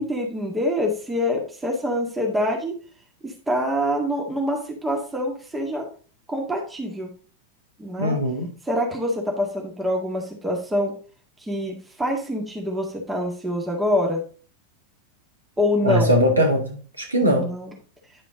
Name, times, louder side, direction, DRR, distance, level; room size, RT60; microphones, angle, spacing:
voice 1, 0.0-2.7 3.2-5.8 6.3-7.1 7.8-8.2 8.7-10.9 11.4-14.2 15.6-16.1 17.2-17.7, left 1 dB, 10° right, 1.9 m, -25 dB
voice 2, 8.0-8.5 15.8-17.5, equal, 80° right, 1.9 m, -20 dB
10.0 x 4.9 x 3.8 m
figure-of-eight pair, 90°, 0 cm